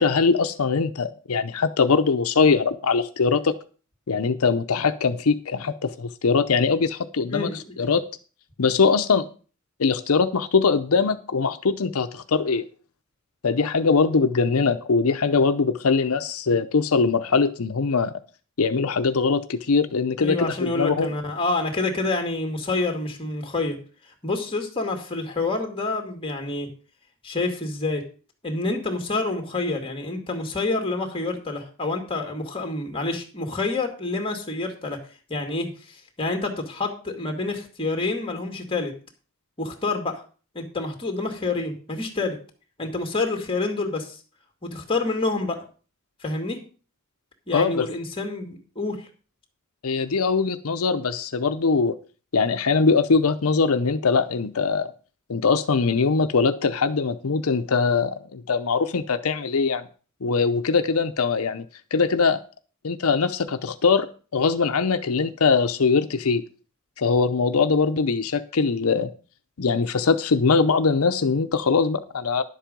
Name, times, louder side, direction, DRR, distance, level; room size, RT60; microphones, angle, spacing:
voice 1, 0.0-3.5 4.1-7.5 7.8-8.0 8.6-9.3 9.8-12.7 13.4-18.1 18.6-21.1 47.5-47.9 49.8-51.9 52.3-54.9 55.3-59.8 60.2-61.6 61.9-62.4 62.8-64.1 64.3-66.4 67.0-69.1 69.6-72.4, left 4 dB, 90° left, 8 dB, 0.7 m, -22 dB
voice 2, 7.3-7.9 20.2-23.8 24.2-26.7 27.2-28.0 28.4-35.0 35.3-38.9 39.6-40.2 40.5-42.4 42.8-44.2 44.6-45.6 46.2-46.6 47.5-49.1, left 3 dB, 25° left, 4 dB, 2.2 m, -28 dB
11.0 x 7.6 x 5.2 m, 0.38 s
head